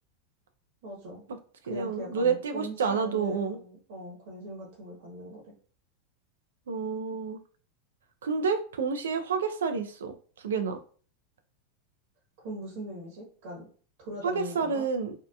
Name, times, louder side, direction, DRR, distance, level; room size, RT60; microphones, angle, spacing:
voice 1, 0.8-1.2 1.6-5.5 12.4-13.7 14.0-14.8, right 1 dB, 65° right, -3 dB, 1.0 m, -41 dB
voice 2, 1.7-3.6 6.7-7.4 8.2-10.8 14.2-15.1, right 5 dB, 85° right, 7 dB, 0.4 m, -29 dB
2.7 x 2.2 x 2.3 m, 0.43 s
hypercardioid pair, 105°, 0 cm